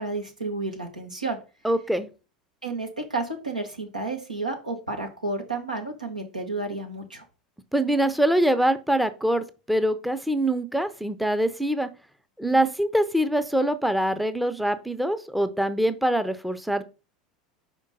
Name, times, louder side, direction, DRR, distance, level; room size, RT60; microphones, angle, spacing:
voice 1, 0.0-1.4 2.6-7.2 12.5-12.6, right 3 dB, 90° right, 2 dB, 1.3 m, -31 dB
voice 2, 1.6-2.1 7.7-11.9 12.4-16.8, right 1 dB, ahead, 11 dB, 0.6 m, -24 dB
5.2 x 5.0 x 4.1 m, 0.33 s
figure-of-eight pair, 80°, 4 cm